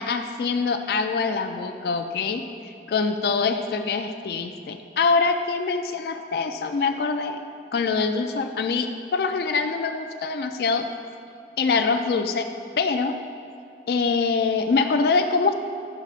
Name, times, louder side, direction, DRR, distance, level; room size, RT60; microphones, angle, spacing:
voice 1, 0.0-2.5 2.9-7.4 7.7-10.9 11.6-12.5 12.8-13.2 13.9-15.5, left 4 dB, 60° left, 6 dB, 0.3 m, -24 dB
10.5 x 6.7 x 2.4 m, 2.6 s
head